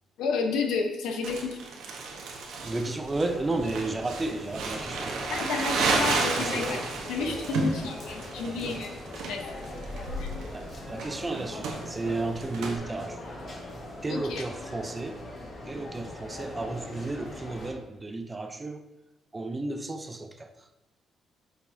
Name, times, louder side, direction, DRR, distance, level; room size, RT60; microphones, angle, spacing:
voice 1, 0.2-1.6 5.3-6.8 7.1-9.0 9.3-9.7 10.2-10.3 14.1-14.4, left 4 dB, 85° left, 3 dB, 0.9 m, -31 dB
Crumpling crinkling, 1.2-12.8, right 3 dB, 85° right, 1.0 m, -32 dB
voice 2, 2.6-5.3 6.0-6.9 7.2-7.5 8.6-8.7 10.5-13.2 14.0-15.2 15.7-18.8 19.3-20.5, right 2 dB, 20° right, 7 dB, 0.6 m, -33 dB
sound 1, 3.1-17.7, left 1 dB, 45° left, 1.6 m, -41 dB
8.6 x 5.1 x 2.7 m, 1.0 s
cardioid pair, 90°, 0 cm